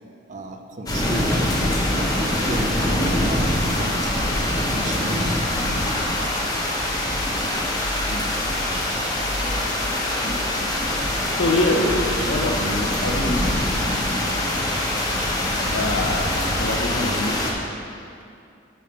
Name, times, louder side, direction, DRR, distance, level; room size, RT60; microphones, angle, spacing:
voice 1, 0.3-1.4 2.5-4.1 4.7-5.5, right 1 dB, 40° right, 5 dB, 0.7 m, -34 dB
sound 1, 0.9-17.5, left 1 dB, 20° left, 1.3 m, -23 dB
voice 2, 10.2-10.7 11.1-13.7 15.7-17.4 17.8-18.0, left 1 dB, 85° left, 1 dB, 1.2 m, -26 dB
10.0 x 5.6 x 5.5 m, 2.5 s
head